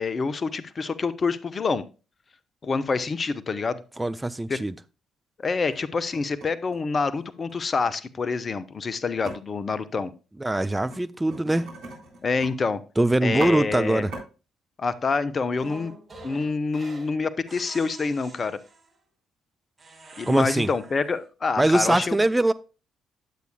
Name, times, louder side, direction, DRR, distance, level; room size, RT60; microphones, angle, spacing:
voice 1, 0.0-1.8 2.6-3.8 4.5-4.6 5.4-10.1 12.2-12.8 13.2-14.0 14.8-15.9 16.2-18.6 20.2-22.2, left 4 dB, 35° left, 0.7 m, -27 dB
voice 2, 4.0-4.7 10.4-11.7 13.0-14.1 20.3-20.7 21.6-22.5, right 1 dB, 15° right, 0.4 m, -22 dB
sound 1, 4.7-4.8 5.4-5.8 6.1-7.5 9.2-9.3 10.8-11.0 11.3-12.5 12.8-12.9 13.2-13.5 14.0-14.2, right 2 dB, 65° right, 3.9 m, -38 dB
sound 2, 15.5-17.1 17.5-18.9 19.8-21.2, right 2 dB, 30° right, 5.1 m, -46 dB
10.5 x 8.2 x 2.2 m
figure-of-eight pair, 45°, 0 cm